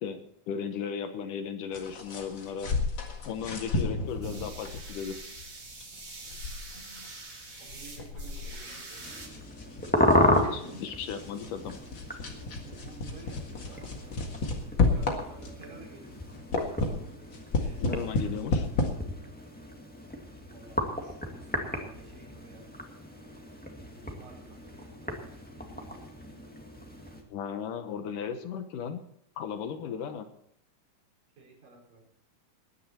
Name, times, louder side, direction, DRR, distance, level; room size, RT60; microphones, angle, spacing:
voice 1, 0.0-2.7 3.3-5.2 10.2-11.8 17.8-18.7 27.3-29.0 29.4-30.3, left 7 dB, 75° left, 8 dB, 2.6 m, -36 dB
sound 1, 1.7-15.7 16.1-18.9, left 3 dB, 40° left, 2.1 m, -33 dB
voice 2, 3.6-4.1 6.7-7.1 7.6-9.4 10.4-10.9 12.6-16.3 16.6-17.0 17.5-17.8 20.5-22.7 24.0-25.3 31.4-32.0, right 3 dB, 75° right, -2 dB, 6.1 m, -51 dB
sound 2, 4.1-9.3, right 3 dB, 30° right, 2.8 m, -45 dB
sound 3, 9.0-27.2, left 1 dB, 5° left, 0.7 m, -33 dB
20.0 x 10.0 x 4.4 m, 0.70 s
omnidirectional pair, 3.9 m